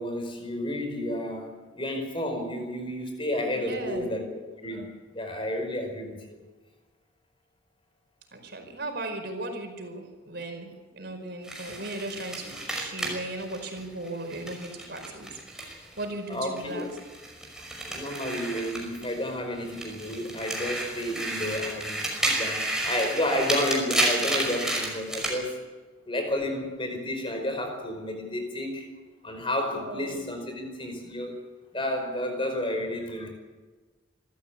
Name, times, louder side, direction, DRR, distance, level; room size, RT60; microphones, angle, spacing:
voice 1, 0.0-6.4 16.3-16.9 17.9-25.7 26.1-28.9 29.2-31.4 31.7-33.3, left 1 dB, 25° left, 4 dB, 5.1 m, -31 dB
voice 2, 3.5-4.1 8.3-15.4 16.0-16.9 29.7-30.2, right 2 dB, 55° right, 5 dB, 4.9 m, -37 dB
sound 1, 11.4-16.0 16.3-19.3 19.6-25.4, right 1 dB, 5° right, 5.6 m, -31 dB
26.0 x 14.5 x 8.6 m, 1.3 s
head